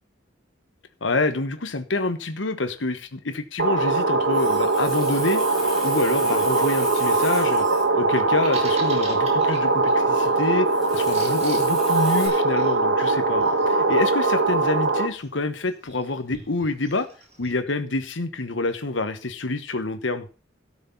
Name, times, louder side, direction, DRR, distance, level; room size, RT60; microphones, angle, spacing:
voice 1, 1.0-5.4 5.8-7.7 7.9-10.7 10.9-17.1 17.4-20.3, left 2 dB, 85° left, 9 dB, 1.2 m, -27 dB
sound 1, 3.6-15.1, right 3 dB, 65° right, 1.8 m, -21 dB
Water tap faucet, 4.1-12.3, left 1 dB, ahead, 6.5 m, -39 dB
Bird vocalization bird call bird song, 8.1-17.5, right 2 dB, 35° right, 4.3 m, -44 dB
13.0 x 6.5 x 7.1 m, 0.35 s
head